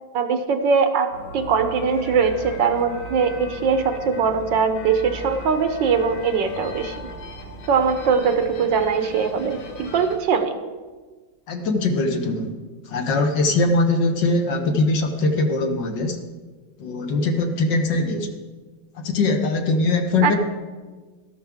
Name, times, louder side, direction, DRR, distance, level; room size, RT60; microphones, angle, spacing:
voice 1, 0.1-7.0 7.7-10.6 20.2-20.4, right 5 dB, 70° right, 8 dB, 1.3 m, -21 dB
sound 1, 1.1-10.2, left 1 dB, 80° left, 2.0 m, -38 dB
voice 2, 11.5-12.5 12.9-16.2 16.8-18.3 18.9-20.4, left 2 dB, 65° left, 5 dB, 1.6 m, -21 dB
13.5 x 12.0 x 3.5 m, 1.4 s
omnidirectional pair, 2.3 m